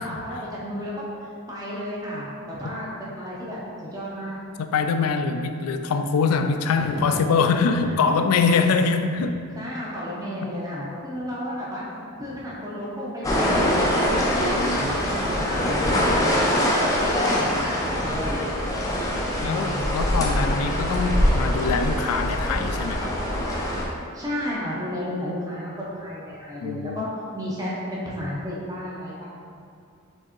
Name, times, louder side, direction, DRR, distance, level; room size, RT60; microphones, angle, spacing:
voice 1, 0.0-4.4 6.8-7.2 7.8-7.9 9.6-11.9 12.2-16.5 16.8-18.9 19.3-19.9 24.1-29.3, equal, 15° right, -6 dB, 0.7 m, -33 dB
voice 2, 4.6-9.4 10.4-10.5 14.4-15.0 19.4-23.2 26.6-27.1, left 5 dB, 85° left, 9 dB, 0.3 m, -24 dB
sound 1, 13.2-23.8, equal, 15° left, 0.4 m, -23 dB
4.4 x 3.6 x 3.0 m, 2.4 s
head